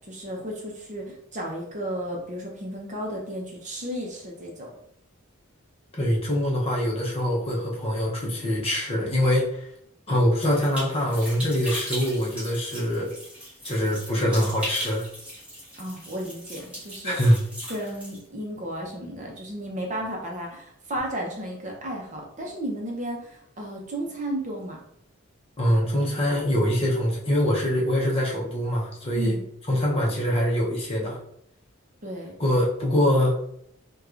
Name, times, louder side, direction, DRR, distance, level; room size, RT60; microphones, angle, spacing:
voice 1, 0.1-4.7 15.8-17.2 17.7-24.8 29.1-29.5 32.0-32.3, equal, 35° right, 0 dB, 0.6 m, -33 dB
voice 2, 6.0-9.7 10.1-13.1 13.6-15.1 17.0-17.4 25.6-29.4 29.7-31.2 32.4-33.4, equal, 25° left, -3 dB, 0.7 m, -24 dB
sound 1, 10.4-18.2, equal, 5° right, 1.2 m, -38 dB
4.5 x 2.3 x 2.4 m, 0.71 s
head